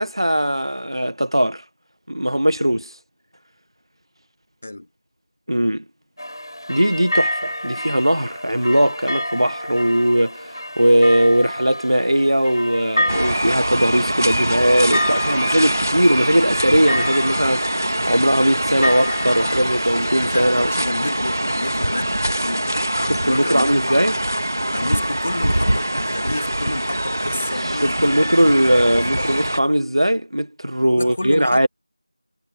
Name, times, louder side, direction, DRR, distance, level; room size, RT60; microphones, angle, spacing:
voice 1, 0.0-1.6 2.1-3.0 5.5-5.8 6.7-20.7 23.0-24.2 27.5-31.7, equal, 60° right, 0.9 m, -19 dB
sound 1, 6.2-20.2, equal, 55° left, 3.8 m, -29 dB
sound 2, 13.1-29.6, right 1 dB, 35° right, 2.0 m, -23 dB
voice 2, 20.2-24.1 24.7-28.6 29.2-29.4 30.8-31.7, left 1 dB, 15° left, 2.9 m, -31 dB
figure-of-eight pair, 175°, 3 cm